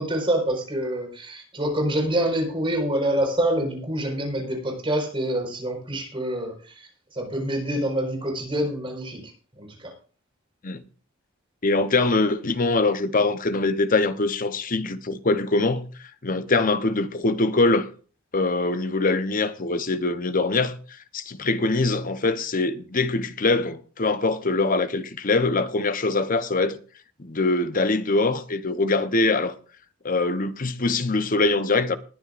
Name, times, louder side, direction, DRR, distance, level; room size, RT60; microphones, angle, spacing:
voice 1, 0.0-9.9, right 1 dB, 25° right, 4.8 m, -26 dB
voice 2, 11.6-15.9 16.2-17.9 18.3-20.8 21.1-26.8 27.2-29.5 30.0-32.0, left 3 dB, 40° left, 0.9 m, -23 dB
20.5 x 10.5 x 2.6 m
head